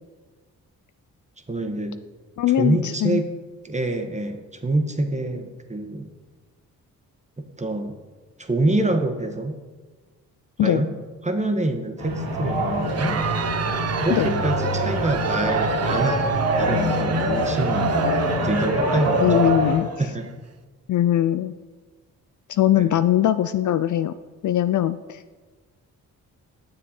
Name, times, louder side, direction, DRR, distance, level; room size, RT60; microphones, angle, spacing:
voice 1, 1.5-2.0 2.6-3.3 3.6-6.1 7.4-8.0 8.4-9.6 10.6-10.9 11.2-13.2 14.0-16.2 16.5-17.9 18.4-19.3 20.0-20.3 22.8-22.9, right 2 dB, 15° right, 5 dB, 1.4 m, -26 dB
voice 2, 2.4-3.2 10.6-10.9 14.1-14.3 19.2-19.9 20.9-21.5 22.5-24.1 24.4-25.2, left 12 dB, 50° left, 13 dB, 0.4 m, -21 dB
sound 1, 12.0-19.7, right 1 dB, 75° right, 2.2 m, -24 dB
Crowd, 12.8-20.3, right 6 dB, 40° right, 0.7 m, -30 dB
9.5 x 7.1 x 4.3 m, 1.3 s
supercardioid pair, 45°, 40 cm